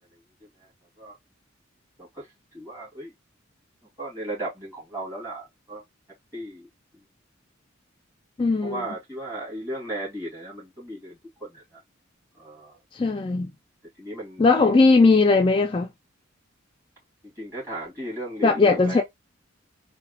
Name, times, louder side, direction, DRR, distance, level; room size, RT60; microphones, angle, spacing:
voice 1, 2.0-3.1 4.0-5.8 6.3-6.7 6.9-7.0 8.6-11.8 12.4-12.8 14.0-14.5 17.2-19.0, right 1 dB, 15° right, 2.0 m, -36 dB
voice 2, 8.4-8.9 12.9-13.5 14.4-15.9 18.4-19.0, left 3 dB, 25° left, 0.3 m, -19 dB
3.9 x 2.1 x 2.5 m
head